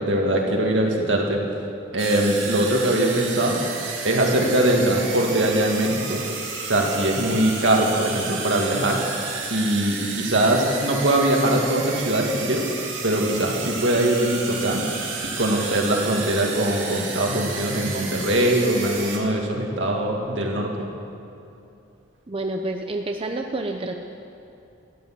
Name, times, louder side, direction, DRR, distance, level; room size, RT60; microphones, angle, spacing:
voice 1, 0.0-1.4 1.9-3.6 4.0-6.2 6.7-9.0 9.5-12.6 13.0-14.8 15.2-20.7, right 1 dB, 75° right, 0 dB, 2.2 m, -22 dB
sound 1, 2.0-19.2, right 4 dB, 90° right, 2.6 m, -32 dB
voice 2, 22.3-23.9, right 2 dB, 30° right, 4 dB, 0.6 m, -28 dB
14.0 x 11.0 x 7.7 m, 2.8 s
head